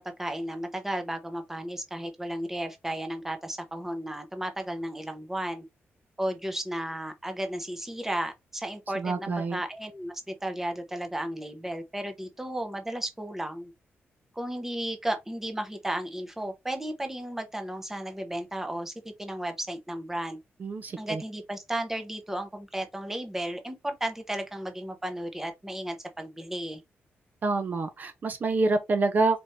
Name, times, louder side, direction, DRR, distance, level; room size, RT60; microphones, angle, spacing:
voice 1, 0.0-5.6 6.2-13.7 14.3-20.4 21.0-26.8, right 1 dB, 10° right, 0.7 m, -34 dB
voice 2, 9.0-9.6 20.6-21.2 27.4-29.4, right 3 dB, 45° right, 0.6 m, -27 dB
4.3 x 2.5 x 3.1 m
wide cardioid pair, 135°, 4 cm